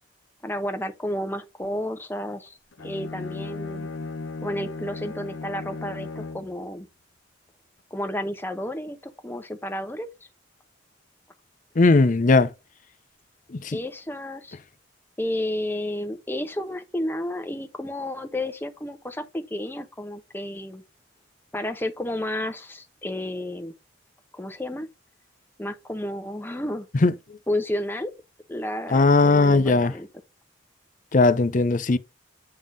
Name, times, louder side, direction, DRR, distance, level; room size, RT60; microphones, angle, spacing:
voice 1, 0.4-2.6 2.8-3.9 4.4-6.9 7.9-10.1 13.7-14.6 15.2-20.8 21.5-23.7 24.3-24.9 25.6-26.9 27.5-28.1 28.5-30.1, left 1 dB, 10° left, 0.9 m, -31 dB
Bowed string instrument, 2.7-6.6, left 3 dB, 85° left, 0.8 m, -36 dB
voice 2, 11.8-12.5 13.5-13.8 26.9-27.1 28.9-29.9 31.1-32.0, left 3 dB, 40° left, 0.6 m, -18 dB
8.9 x 3.6 x 3.9 m
head